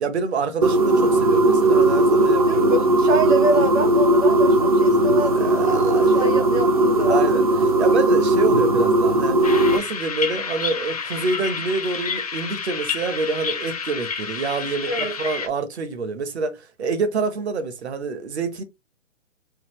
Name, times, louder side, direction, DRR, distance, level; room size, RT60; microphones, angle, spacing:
voice 1, 0.0-2.8 5.1-6.2 7.1-7.4 7.8-14.9 15.2-18.6, right 4 dB, 55° right, 1.0 m, -27 dB
sound 1, 0.6-9.8, right 1 dB, 30° right, 0.4 m, -18 dB
voice 2, 2.5-7.4 14.9-15.1, right 2 dB, 75° right, 2.2 m, -26 dB
sound 2, 9.4-15.5, left 6 dB, 30° left, 0.5 m, -29 dB
4.1 x 2.5 x 3.1 m
hypercardioid pair, 155°, 38 cm